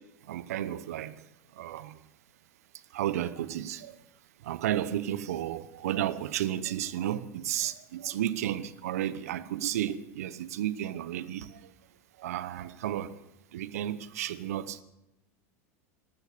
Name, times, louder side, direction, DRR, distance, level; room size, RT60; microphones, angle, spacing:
voice 1, 0.2-1.3 1.5-2.0 2.7-4.0 4.4-11.7 12.2-13.2 13.5-14.8, right 12 dB, 75° right, 15 dB, 0.8 m, -33 dB
13.5 x 13.0 x 6.8 m, 0.91 s
hypercardioid pair, 90°, 8 cm